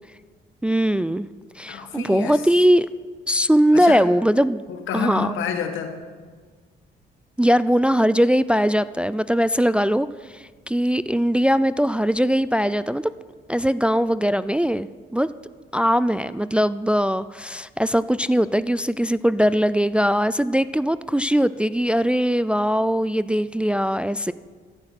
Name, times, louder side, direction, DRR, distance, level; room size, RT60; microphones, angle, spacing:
voice 1, 0.6-1.3 1.6-2.9 3.3-4.6 4.9-5.3 7.4-13.1 13.5-15.3 15.7-24.3, equal, 5° right, 15 dB, 0.3 m, -20 dB
voice 2, 1.7-2.4 3.7-4.0 4.7-6.0, left 6 dB, 80° left, 6 dB, 1.9 m, -28 dB
14.0 x 12.0 x 5.9 m, 1.5 s
cardioid pair, 90°, 20 cm